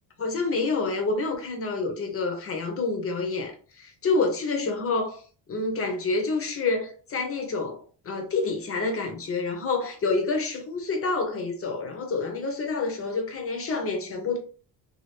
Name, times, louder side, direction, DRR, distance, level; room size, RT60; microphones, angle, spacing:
voice 1, 0.2-5.2 5.5-14.4, left 3 dB, 35° left, 0.9 m, -28 dB
2.8 x 2.6 x 3.3 m
cardioid pair, 120°, 41 cm